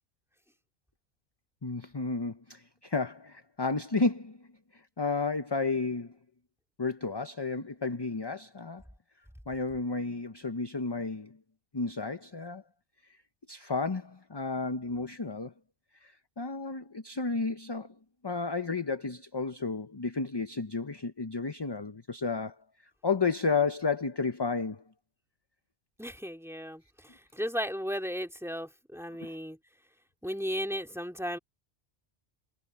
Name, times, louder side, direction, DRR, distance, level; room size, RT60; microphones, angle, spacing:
voice 1, 1.6-6.2 6.8-8.8 9.5-11.4 11.7-12.6 13.5-15.5 16.0-17.9 18.2-22.6 23.0-24.8 29.2-29.4, left 4 dB, 25° left, 0.7 m, -32 dB
voice 2, 26.0-29.6 30.2-31.4, equal, ahead, 2.5 m, -35 dB
omnidirectional pair, 1.2 m